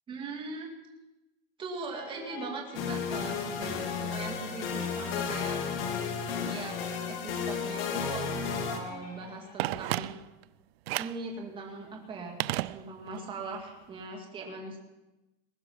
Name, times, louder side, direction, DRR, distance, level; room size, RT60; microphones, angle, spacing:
voice 1, 0.1-0.7 1.6-5.6 6.4-6.8 7.1-10.2 11.0-12.4 12.7-14.8, right 3 dB, 15° right, 1 dB, 2.3 m, -40 dB
sound 1, 1.9-10.0, left 5 dB, 30° left, 2.0 m, -48 dB
sound 2, 2.7-8.8, left 6 dB, 75° left, 2.7 m, -33 dB
Telephone, 9.6-10.5 10.9-11.3 12.4-13.3 13.5-13.6, right 17 dB, 85° right, 0.5 m, -33 dB
21.0 x 11.5 x 5.7 m, 1.0 s
supercardioid pair, 175°, 30 cm